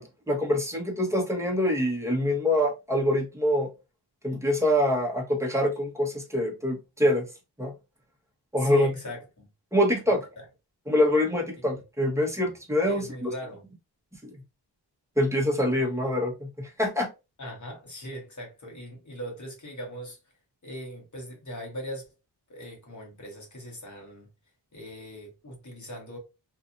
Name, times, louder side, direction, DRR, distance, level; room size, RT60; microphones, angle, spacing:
voice 1, 0.0-3.7 4.2-7.3 7.6-7.7 8.5-8.9 9.7-10.2 10.9-13.3 15.2-17.1, left 1 dB, 5° right, 1.1 m, -25 dB
voice 2, 8.6-9.5 10.1-10.4 11.7-11.8 12.9-13.6 17.4-20.2 20.6-22.1 22.5-24.3 24.7-26.2, equal, 45° left, 1.3 m, -40 dB
2.8 x 2.5 x 2.5 m
wide cardioid pair, 75°, 42 cm